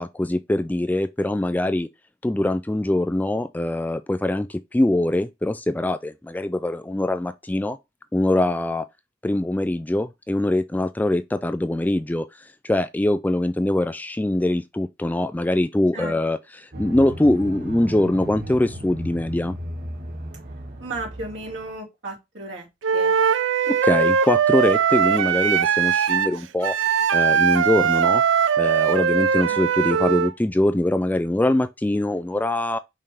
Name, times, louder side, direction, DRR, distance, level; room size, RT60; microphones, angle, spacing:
voice 1, 0.0-1.9 2.2-7.8 8.1-8.9 9.2-19.6 23.7-26.8 27.1-28.2 28.6-32.8, left 1 dB, 10° left, 0.3 m, -23 dB
sound 1, 16.7-21.7, equal, 50° right, 1.4 m, -35 dB
voice 2, 20.8-22.7 22.9-23.1 29.5-29.6, right 2 dB, 70° right, 2.9 m, -34 dB
Wind instrument woodwind instrument, 22.8-30.3, right 7 dB, 90° right, 0.5 m, -20 dB
5.5 x 3.4 x 5.3 m
head